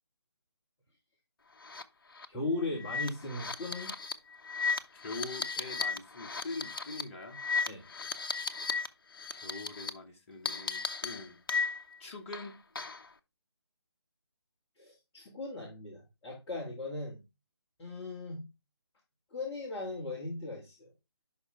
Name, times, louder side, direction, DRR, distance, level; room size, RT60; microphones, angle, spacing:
sound 1, 1.6-1.8 2.1-2.3 2.8-8.9 9.1-9.9 10.5-12.0 12.3-13.1, left 5 dB, 55° left, 0.8 m, -35 dB
voice 1, 2.3-3.9 7.7-7.8 14.8-17.2 17.8-18.5 19.3-20.9, left 2 dB, 15° left, 2.1 m, -38 dB
voice 2, 4.9-7.5 9.3-11.4 12.0-12.5, left 2 dB, 30° left, 1.9 m, -43 dB
11.0 x 5.1 x 3.5 m
figure-of-eight pair, 150°, 14 cm